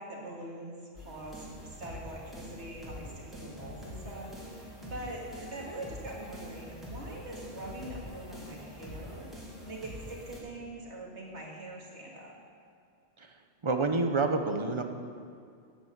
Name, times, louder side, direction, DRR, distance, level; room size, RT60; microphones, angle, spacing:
voice 1, 0.0-9.3 9.7-12.3, right 1 dB, 65° right, -2 dB, 2.4 m, -43 dB
sound 1, 1.0-10.4, left 1 dB, ahead, 2.6 m, -45 dB
voice 2, 13.2-14.8, right 3 dB, 30° right, 6 dB, 0.7 m, -29 dB
9.1 x 8.6 x 8.0 m, 2.3 s
omnidirectional pair, 1.2 m